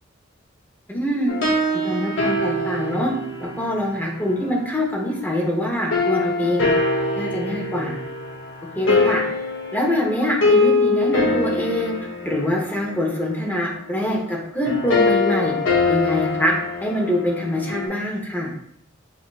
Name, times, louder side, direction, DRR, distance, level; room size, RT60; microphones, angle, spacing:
voice 1, 0.9-1.4 1.8-3.1 3.4-6.6 7.2-7.9 8.8-9.2 9.7-11.9 12.2-15.5 15.9-16.5 16.8-18.5, left 1 dB, 10° left, -2 dB, 0.8 m, -24 dB
sound 1, 1.3-4.6 5.9-17.9, left 3 dB, 75° left, 0.8 m, -23 dB
5.9 x 2.4 x 2.4 m, 0.66 s
head